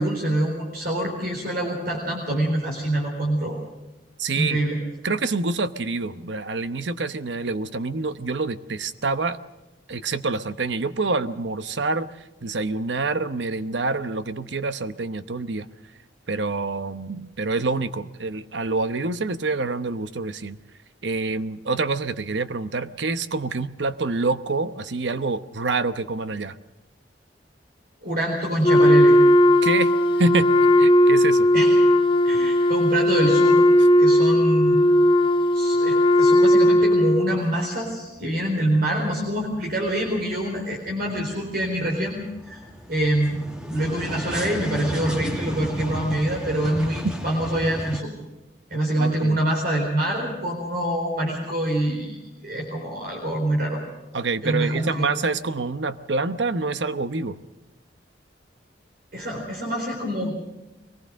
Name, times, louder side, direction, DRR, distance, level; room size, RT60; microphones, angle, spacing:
voice 1, 0.0-3.6 4.3-4.8 28.0-29.2 31.5-31.8 32.2-33.6 34.0-34.8 35.5-42.6 42.9-48.1 48.7-53.8 54.4-55.1 59.1-60.3, right 1 dB, 55° right, 0 dB, 4.1 m, -25 dB
voice 2, 4.2-4.6 5.0-9.4 9.9-12.1 12.4-15.7 16.3-20.6 21.0-26.6 29.6-30.5 30.8-31.5 49.0-49.4 54.1-57.4, right 3 dB, 85° right, 13 dB, 0.9 m, -26 dB
Wind instrument woodwind instrument, 28.6-37.5, left 1 dB, 30° left, 1.1 m, -17 dB
sound 1, 37.9-38.5 38.8-48.0, equal, 5° right, 1.9 m, -34 dB
23.0 x 19.0 x 6.4 m, 1.1 s
head